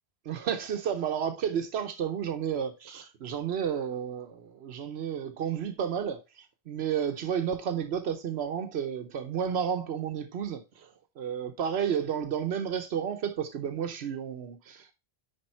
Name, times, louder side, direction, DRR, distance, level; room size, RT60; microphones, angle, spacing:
voice 1, 0.2-14.9, right 8 dB, 85° right, 1.0 m, -32 dB
9.8 x 3.5 x 4.3 m
omnidirectional pair, 1.0 m